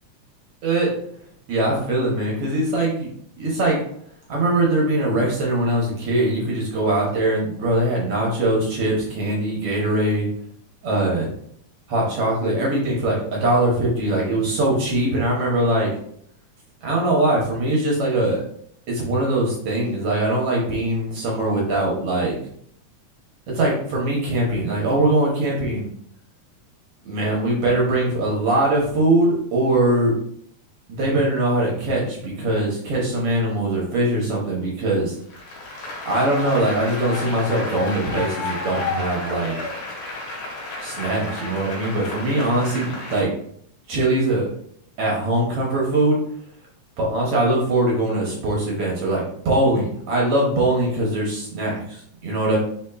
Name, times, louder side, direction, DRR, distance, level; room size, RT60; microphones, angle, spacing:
voice 1, 1.5-3.1 3.4-3.8 4.3-10.3 10.8-11.3 11.9-15.9 16.8-18.4 18.9-22.3 23.5-25.9 27.0-30.1 30.9-35.1 36.0-39.5 40.8-43.3 43.9-44.5 45.0-46.2 47.0-52.6, right 1 dB, 65° right, -3 dB, 1.6 m, -21 dB
Applause, 35.3-43.2, left 3 dB, 85° left, 2.7 m, -32 dB
4.9 x 4.4 x 2.2 m, 0.66 s
omnidirectional pair, 3.5 m